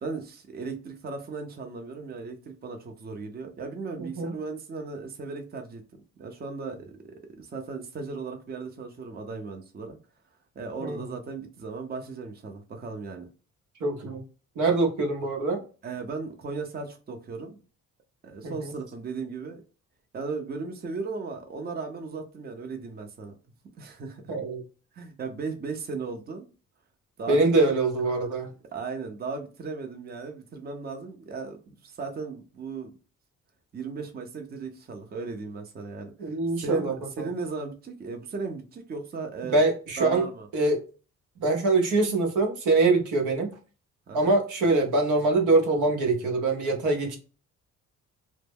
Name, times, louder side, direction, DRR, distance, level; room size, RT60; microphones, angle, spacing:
voice 1, 0.0-5.8 6.2-7.0 7.4-10.0 10.6-13.3 15.8-17.6 18.2-19.6 20.1-23.3 23.8-24.4 24.9-26.5 27.2-27.4 28.7-32.9 33.7-39.6 40.0-40.5 44.1-44.4, right 4 dB, 30° right, 0.6 m, -36 dB
voice 2, 4.0-4.3 10.8-11.0 13.8-14.2 14.6-15.6 18.4-18.7 24.3-24.6 27.3-28.5 36.2-37.3 39.4-40.2 40.5-40.8 41.4-43.5 44.1-47.2, right 3 dB, 80° right, 0.8 m, -24 dB
2.1 x 2.0 x 3.3 m
cardioid pair, 90°, 30 cm